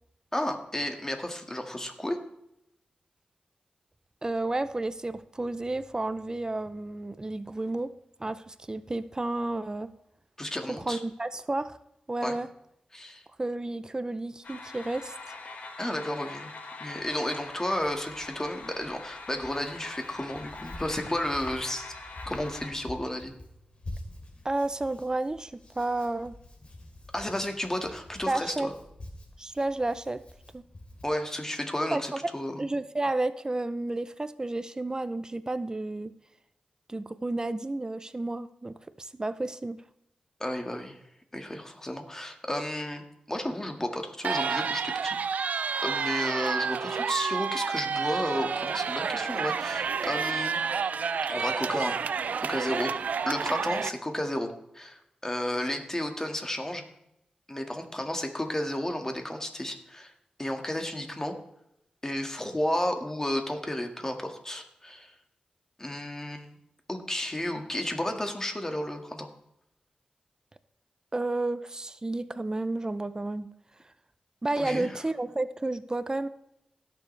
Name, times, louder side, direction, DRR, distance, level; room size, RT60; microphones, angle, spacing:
voice 1, 0.3-2.2 10.4-11.0 12.2-12.4 12.9-13.2 15.8-16.5 16.8-21.9 22.3-23.3 27.1-28.7 31.0-32.6 40.4-41.0 41.3-50.6 51.3-52.0 52.4-52.9 53.3-56.8 57.5-60.1 60.4-61.4 62.0-65.1 65.8-66.6 66.9-69.3 74.6-75.0, left 1 dB, 20° left, 4 dB, 1.9 m, -32 dB
voice 2, 4.2-7.9 8.2-9.9 10.7-11.8 12.1-12.5 13.4-15.1 24.4-26.3 28.3-28.7 29.4-30.2 30.5-30.6 31.9-32.2 32.6-36.1 36.9-39.8 71.1-73.5 74.4-76.3, right 2 dB, 25° right, 13 dB, 0.6 m, -31 dB
sound 1, 14.4-22.7, left 3 dB, 75° left, 1.7 m, -43 dB
Hands, 17.0-31.0, left 1 dB, 45° left, 2.8 m, -48 dB
sound 2, 44.2-53.9, right 6 dB, 80° right, 0.5 m, -30 dB
17.0 x 6.9 x 3.3 m, 0.78 s
cardioid pair, 65°, 3 cm